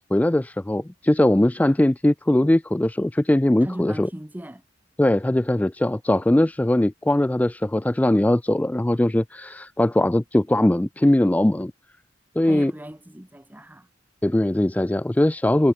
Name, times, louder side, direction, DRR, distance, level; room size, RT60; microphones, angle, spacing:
voice 1, 0.1-4.1 5.0-11.7 12.4-12.7 14.2-15.7, left 1 dB, 10° left, 0.3 m, -20 dB
voice 2, 3.6-4.6 12.4-13.9, equal, 10° right, 1.2 m, -37 dB
head